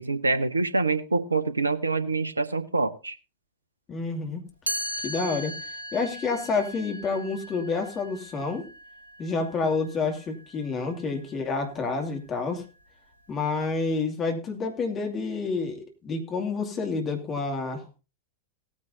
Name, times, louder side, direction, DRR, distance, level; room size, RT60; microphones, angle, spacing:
voice 1, 0.0-3.2, right 3 dB, 80° right, 14 dB, 0.8 m, -26 dB
voice 2, 3.9-4.4 5.0-5.5 5.9-8.7 9.2-12.6 13.3-17.8, left 4 dB, 25° left, 3 dB, 2.5 m, -29 dB
Chime, 4.7-10.5, equal, 90° left, 1.5 m, -37 dB
17.5 x 9.7 x 2.7 m, 0.31 s
figure-of-eight pair, 90°, 0 cm